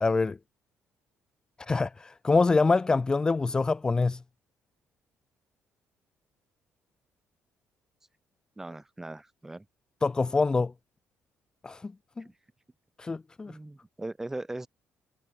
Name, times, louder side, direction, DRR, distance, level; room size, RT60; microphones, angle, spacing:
voice 1, 0.0-0.4 1.6-4.2 10.0-10.7 11.6-12.2 13.0-13.6, left 3 dB, 15° left, 0.9 m, -25 dB
voice 2, 8.6-9.6 13.5-14.7, right 2 dB, 10° right, 2.8 m, -39 dB
cardioid pair, 160°, 5 cm